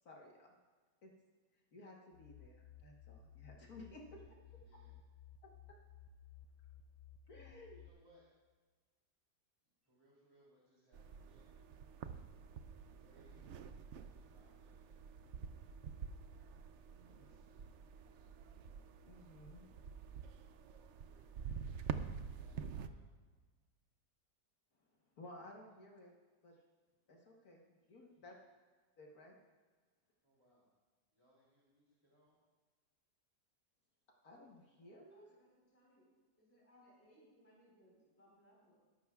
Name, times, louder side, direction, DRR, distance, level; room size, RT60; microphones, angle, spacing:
voice 1, 0.0-0.6 1.0-1.1 1.7-4.4 4.7-4.8 7.3-7.8 19.1-19.7 25.2-26.1 26.4-26.6 27.1-28.3 29.0-29.4 34.2-35.3, left 1 dB, 60° left, -1 dB, 1.7 m, -56 dB
sound 1, 2.1-7.9, left 8 dB, 90° left, 1.4 m, -58 dB
voice 2, 7.8-8.2 9.9-11.5 12.9-14.8 17.0-17.6 21.0-23.1 28.1-28.4 30.2-30.7 31.1-32.4, equal, 15° right, -7 dB, 2.8 m, -71 dB
sound 2, 10.9-22.9, right 7 dB, 85° right, 0.6 m, -48 dB
voice 3, 35.1-36.1 36.4-38.7, equal, 10° left, -5 dB, 4.0 m, -67 dB
21.0 x 11.5 x 2.4 m, 1.4 s
omnidirectional pair, 1.9 m